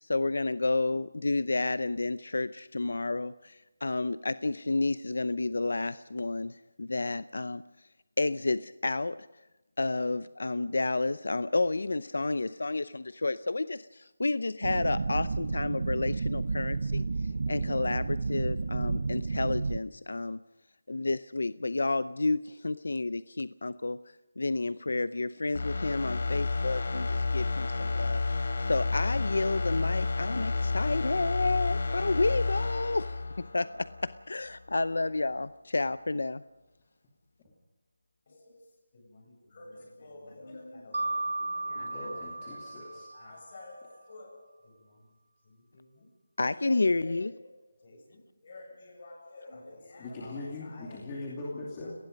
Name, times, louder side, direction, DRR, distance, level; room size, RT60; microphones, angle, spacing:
voice 1, 0.0-7.6 8.2-9.3 9.8-17.0 17.5-20.4 20.9-24.0 24.4-36.4 46.4-47.3, left 3 dB, 75° left, 0.7 m, -30 dB
sound 1, 14.6-19.8, right 3 dB, 50° right, 0.8 m, -31 dB
sound 2, 25.5-34.2 34.6-34.7, left 3 dB, 55° left, 4.2 m, -31 dB
voice 2, 38.3-38.7 38.9-42.3 42.6-45.1 45.4-46.1 46.6-51.0 51.8-51.9, left 2 dB, 35° left, 7.8 m, -50 dB
Mallet percussion, 40.9-43.7, right 2 dB, 85° right, 0.9 m, -35 dB
voice 3, 41.8-43.3 50.0-51.9, left 2 dB, 15° left, 2.5 m, -41 dB
30.0 x 19.0 x 5.3 m
figure-of-eight pair, 175°, 0 cm